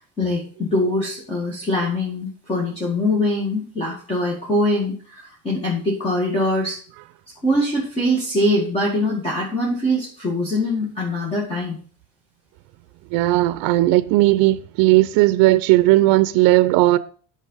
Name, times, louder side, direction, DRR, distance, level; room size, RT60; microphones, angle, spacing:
voice 1, 0.2-6.8 7.4-11.8, left 1 dB, 15° left, 2.0 m, -23 dB
voice 2, 13.1-17.0, right 18 dB, 70° right, 0.6 m, -16 dB
10.0 x 5.4 x 5.5 m
cardioid pair, 165°, 36 cm